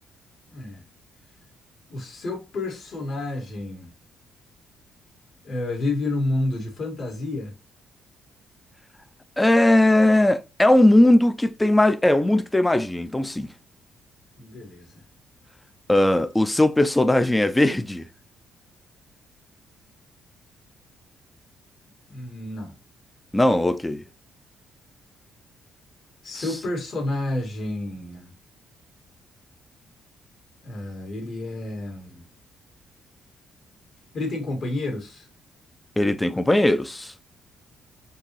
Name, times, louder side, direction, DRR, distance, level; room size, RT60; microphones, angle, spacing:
voice 1, 0.5-0.8 1.9-3.9 5.4-7.5 14.4-15.0 22.1-22.7 26.2-28.3 30.6-32.2 34.1-35.3, left 2 dB, 60° left, 2.1 m, -30 dB
voice 2, 9.4-13.5 15.9-18.1 23.3-24.0 26.4-26.5 36.0-37.1, left 1 dB, 10° left, 0.4 m, -19 dB
4.6 x 3.0 x 3.0 m
cardioid pair, 90°, 0 cm